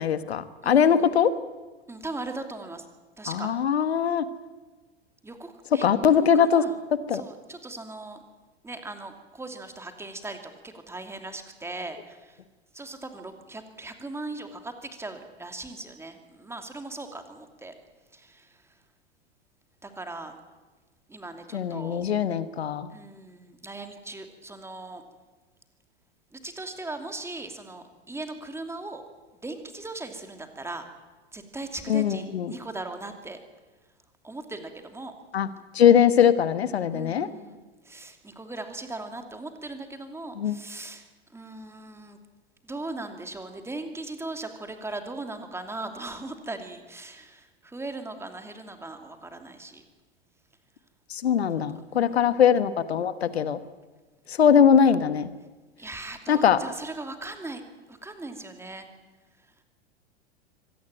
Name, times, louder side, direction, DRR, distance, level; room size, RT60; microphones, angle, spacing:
voice 1, 0.0-1.3 3.3-4.2 5.8-6.6 7.1-7.2 21.5-22.9 31.9-32.5 35.3-35.5 35.7-37.3 40.4-40.6 51.1-53.6 54.3-55.3 56.3-56.6, left 8 dB, 70° left, 13 dB, 1.4 m, -21 dB
voice 2, 0.6-1.1 1.9-2.8 3.2-3.5 5.2-6.7 7.1-8.2 8.6-12.4 12.7-17.7 18.1-18.5 19.8-20.3 21.1-22.0 22.9-25.0 26.3-29.0 29.4-30.8 31.3-33.4 34.2-35.1 36.9-41.1 41.3-42.2 42.6-49.8 51.8-52.4 55.8-57.6 57.9-58.9, right 2 dB, 10° right, 6 dB, 2.8 m, -39 dB
25.0 x 17.5 x 9.1 m, 1.2 s
figure-of-eight pair, 95°, 32 cm